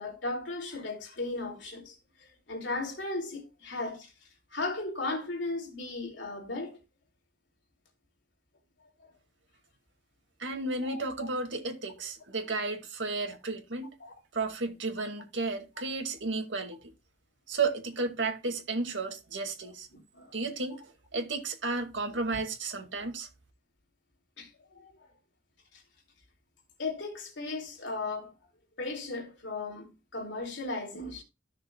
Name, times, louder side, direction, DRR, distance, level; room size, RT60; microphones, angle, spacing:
voice 1, 0.0-4.1 4.5-6.8 9.0-9.1 10.8-11.3 14.0-14.1 19.9-20.4 23.0-23.1 24.4-24.5 24.7-24.9 25.7-25.8 26.8-28.3 28.8-31.2, left 2 dB, 70° left, 3.2 m, -36 dB
voice 2, 10.4-13.9 14.3-16.8 17.5-19.9 20.3-20.8 21.1-23.3, right 3 dB, 75° right, 2.2 m, -33 dB
14.5 x 6.5 x 2.3 m
head